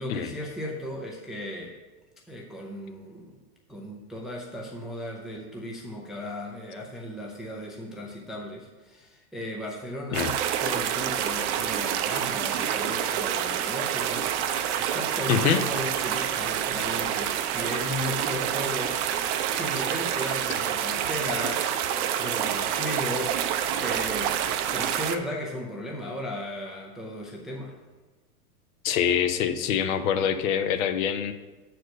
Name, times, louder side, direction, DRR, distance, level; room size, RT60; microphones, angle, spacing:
voice 1, 0.0-1.7 2.3-3.4 3.7-10.3 10.6-19.0 19.5-24.4 24.7-27.7, left 1 dB, ahead, -2 dB, 0.4 m, -36 dB
sound 1, 10.1-25.2, right 10 dB, 50° right, 0.6 m, -28 dB
voice 2, 28.8-31.3, left 8 dB, 60° left, 9 dB, 0.8 m, -25 dB
6.5 x 4.5 x 6.3 m, 1.2 s
hypercardioid pair, 125°, 46 cm